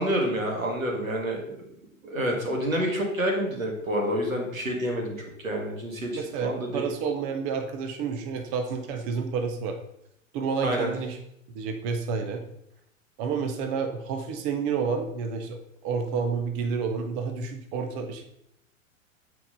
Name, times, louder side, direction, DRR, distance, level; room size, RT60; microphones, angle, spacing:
voice 1, 0.0-1.6 2.0-6.1 6.4-6.9 10.6-10.9, equal, 80° right, 0 dB, 2.0 m, -28 dB
voice 2, 6.1-9.8 10.3-11.2 11.5-12.4 13.2-18.2, right 5 dB, 15° right, 5 dB, 0.4 m, -30 dB
8.2 x 4.6 x 3.8 m, 0.77 s
figure-of-eight pair, 100°, 40 cm